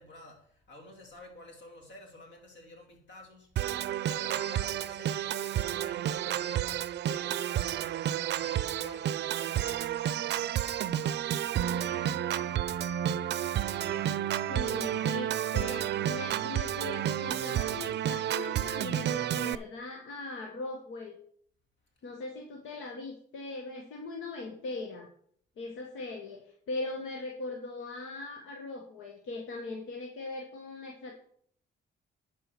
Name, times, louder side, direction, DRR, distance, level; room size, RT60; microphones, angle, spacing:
voice 1, 0.0-13.5, left 2 dB, 65° left, 2 dB, 3.2 m, -52 dB
Organ, 3.6-19.6, right 11 dB, 60° right, 0.5 m, -31 dB
voice 2, 14.5-21.1 22.0-25.1 25.6-31.1, left 2 dB, 85° left, 2 dB, 1.5 m, -40 dB
11.0 x 4.8 x 6.0 m, 0.62 s
cardioid pair, 90°, 20 cm